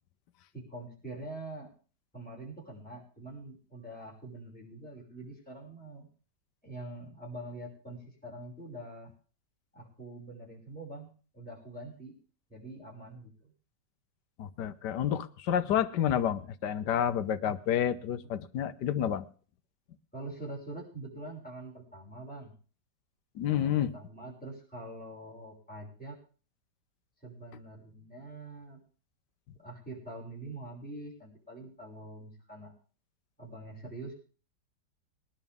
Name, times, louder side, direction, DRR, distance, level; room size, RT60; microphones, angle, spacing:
voice 1, 0.5-1.7 2.1-6.1 6.6-9.1 9.7-12.1 12.5-13.5 20.1-22.5 23.5-26.2 27.2-28.8 29.6-32.7 33.4-34.1, right 2 dB, 5° left, -4 dB, 5.9 m, -44 dB
voice 2, 14.4-19.3 23.3-23.9, left 9 dB, 75° left, 12 dB, 1.4 m, -29 dB
20.5 x 11.0 x 3.5 m, 0.39 s
omnidirectional pair, 1.9 m